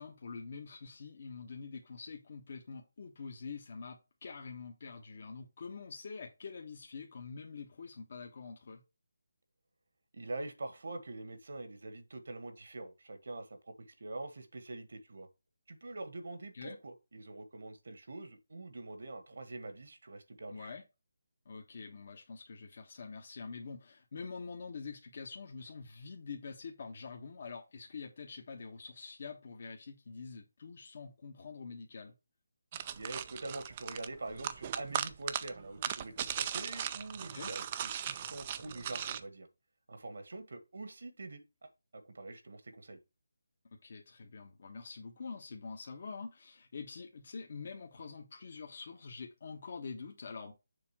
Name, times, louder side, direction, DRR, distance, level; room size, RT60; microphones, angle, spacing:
voice 1, 0.0-8.8 16.5-16.8 20.5-20.8 21.4-32.1 37.3-37.5 43.7-50.5, left 5 dB, 50° left, 1.3 m, -46 dB
voice 2, 10.1-15.3 15.7-20.7 32.9-39.5 39.9-43.0, right 2 dB, 70° right, 1.6 m, -45 dB
sound 1, 32.7-39.2, right 9 dB, 30° right, 0.5 m, -38 dB
6.9 x 3.8 x 5.9 m
figure-of-eight pair, 165°, 0 cm